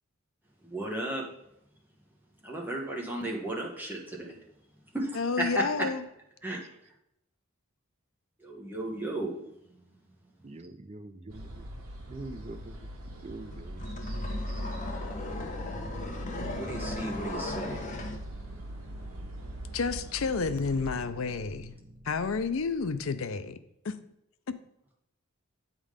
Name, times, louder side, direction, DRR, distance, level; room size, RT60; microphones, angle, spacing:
voice 1, 0.6-1.2 2.4-4.3 4.9-5.9 6.4-6.6 8.4-9.7 16.5-17.9, right 1 dB, 10° right, -1 dB, 1.1 m, -34 dB
voice 2, 5.1-6.0 19.7-21.7 22.1-23.6 23.8-24.0, left 4 dB, 70° left, 10 dB, 0.5 m, -30 dB
voice 3, 10.4-11.7 12.1-12.8 13.2-13.9, right 2 dB, 30° right, 10 dB, 0.4 m, -44 dB
sound 1, 11.3-21.1, equal, 85° right, 1.4 m, -40 dB
sound 2, 13.5-18.2, left 2 dB, 35° left, 0.9 m, -37 dB
sound 3, 15.5-23.3, right 2 dB, 50° right, 0.9 m, -50 dB
8.2 x 3.7 x 5.0 m, 0.79 s
head